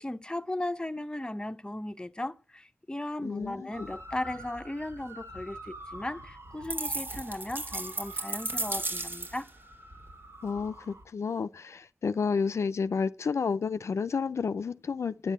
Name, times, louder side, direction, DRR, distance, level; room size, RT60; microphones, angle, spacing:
voice 1, 0.0-9.5, left 1 dB, 15° left, 0.7 m, -36 dB
voice 2, 3.2-3.9 10.4-15.3, left 5 dB, 70° left, 0.5 m, -31 dB
sound 1, 3.7-11.0, right 1 dB, 65° right, 2.2 m, -47 dB
sound 2, 6.7-9.5, right 2 dB, 45° right, 1.4 m, -34 dB
9.1 x 7.4 x 7.9 m
cardioid pair, 45°, 5 cm